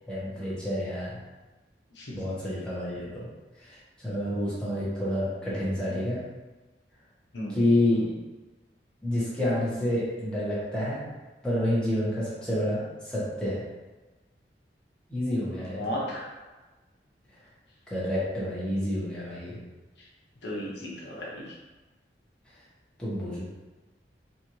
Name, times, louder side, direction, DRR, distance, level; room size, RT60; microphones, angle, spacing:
voice 1, 0.1-1.1 2.1-3.3 3.6-6.2 7.5-8.1 9.0-11.0 11.4-13.6 15.1-15.8 17.9-19.6 23.0-23.5, left 1 dB, 5° left, -10 dB, 1.2 m, -28 dB
voice 2, 15.5-16.2 20.4-21.5, equal, 80° left, -5 dB, 0.9 m, -35 dB
4.1 x 2.7 x 3.0 m, 1.2 s
head